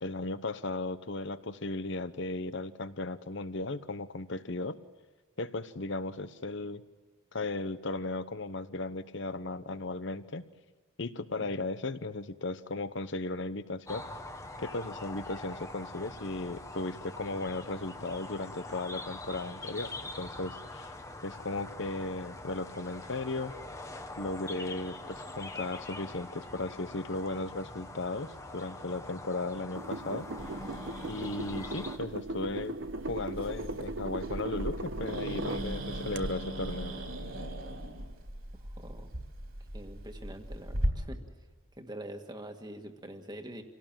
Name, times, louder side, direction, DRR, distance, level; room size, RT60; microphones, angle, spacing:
voice 1, 0.0-4.8 5.4-6.8 7.3-10.4 11.0-14.0 14.6-20.9 21.2-23.5 24.2-30.3 31.0-32.8 33.1-36.9, left 2 dB, 55° left, 13 dB, 1.0 m, -36 dB
sound 1, 13.9-32.0, left 2 dB, 15° left, 1.2 m, -44 dB
sound 2, 29.8-35.7 36.2-36.3, right 2 dB, 60° right, 0.9 m, -38 dB
Growling, 30.4-40.9, equal, 75° right, 3.8 m, -39 dB
voice 2, 38.8-39.1 39.7-41.2 41.7-43.6, right 1 dB, 20° right, 4 dB, 1.8 m, -44 dB
27.0 x 17.5 x 7.5 m, 1.5 s
head